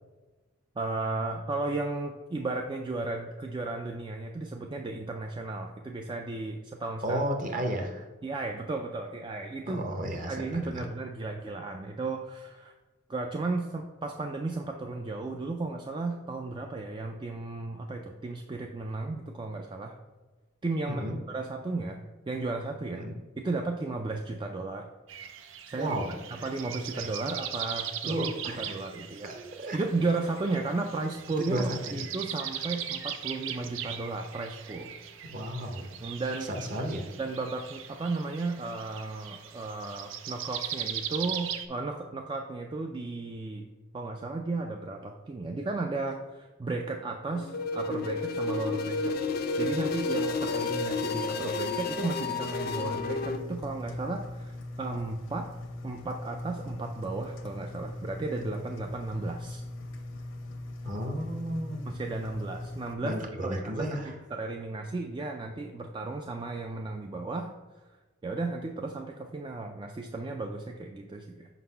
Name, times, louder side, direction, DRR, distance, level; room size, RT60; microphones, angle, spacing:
voice 1, 0.8-7.2 8.2-9.8 10.3-12.7 13.1-19.9 20.6-23.0 23.4-24.9 25.7-26.0 26.3-28.2 28.5-29.3 29.7-34.9 36.0-36.5 37.2-43.7 43.9-49.1 49.6-55.5 55.8-59.6 61.9-63.2 63.4-67.5 68.2-71.5, right 3 dB, 25° right, 3 dB, 0.3 m, -34 dB
voice 2, 7.0-8.0 9.7-10.8 20.8-21.2 22.9-23.1 25.7-26.1 28.0-28.8 29.4-29.8 31.5-32.0 35.3-35.9 36.6-37.0 60.8-61.8 63.0-64.1, right 1 dB, 40° right, 4 dB, 0.9 m, -33 dB
sound 1, 25.1-41.7, right 9 dB, 80° right, 0.5 m, -39 dB
sound 2, 47.3-53.4, left 3 dB, 50° left, 0.5 m, -31 dB
Engine, 52.8-62.9, left 1 dB, 75° left, 0.8 m, -41 dB
5.1 x 4.0 x 5.5 m, 1.2 s
head